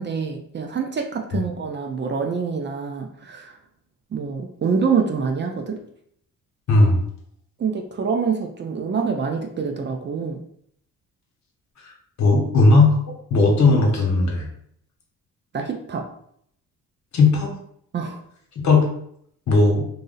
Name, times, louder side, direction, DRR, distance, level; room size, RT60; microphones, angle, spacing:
voice 1, 0.0-3.6 4.1-5.8 7.6-10.4 15.5-16.1 17.9-18.2, right 5 dB, 35° right, 3 dB, 0.5 m, -26 dB
voice 2, 12.2-13.0 13.3-14.5 17.1-17.6 18.6-18.9 19.5-19.8, left 3 dB, 55° left, 1 dB, 0.9 m, -16 dB
2.6 x 2.0 x 3.9 m, 0.68 s
supercardioid pair, 70°, 33 cm